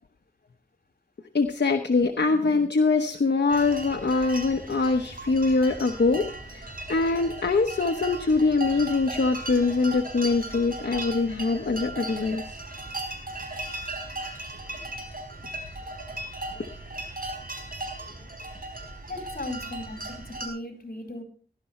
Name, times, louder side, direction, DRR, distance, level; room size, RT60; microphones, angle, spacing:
voice 1, 1.3-6.2 6.5-12.4, left 3 dB, 90° left, 4 dB, 1.0 m, -23 dB
sound 1, 3.5-20.5, right 2 dB, 55° right, 4.2 m, -37 dB
voice 2, 19.1-21.2, left 2 dB, 60° left, 2 dB, 4.3 m, -37 dB
18.0 x 11.5 x 3.2 m, 0.38 s
wide cardioid pair, 65°, 17 cm